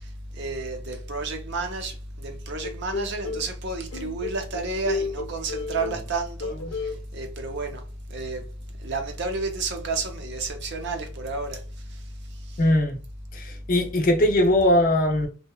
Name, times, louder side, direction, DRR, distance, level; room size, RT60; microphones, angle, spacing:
voice 1, 0.3-6.5 7.1-7.8 8.1-8.4 8.8-11.6, right 3 dB, 55° right, 0.5 m, -31 dB
sound 1, 2.6-3.5 3.9-6.1 6.4-7.0, left 3 dB, 85° left, 0.6 m, -32 dB
voice 2, 12.6-13.0 13.3-15.3, left 1 dB, 40° left, 0.5 m, -20 dB
2.8 x 2.1 x 2.2 m
head